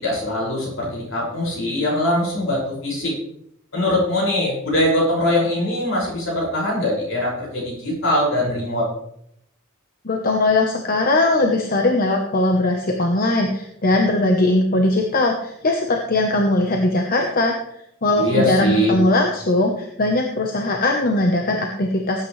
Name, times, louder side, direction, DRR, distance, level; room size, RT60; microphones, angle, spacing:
voice 1, 0.0-3.1 3.7-8.9 18.2-19.0, left 1 dB, 70° left, -4 dB, 6.1 m, -22 dB
voice 2, 10.0-17.6 18.0-22.2, left 2 dB, 45° left, 2 dB, 1.1 m, -20 dB
18.5 x 8.9 x 3.3 m, 0.74 s
head